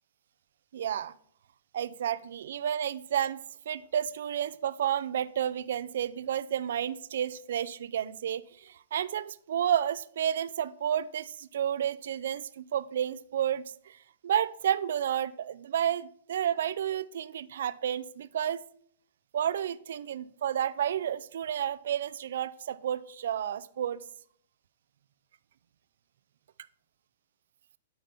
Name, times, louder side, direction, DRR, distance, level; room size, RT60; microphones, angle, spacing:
voice 1, 0.7-1.1 1.7-14.0 14.2-18.6 19.3-24.0, right 10 dB, 65° right, 16 dB, 0.3 m, -31 dB
9.2 x 4.0 x 4.3 m, 0.62 s
hypercardioid pair, 120°, 0 cm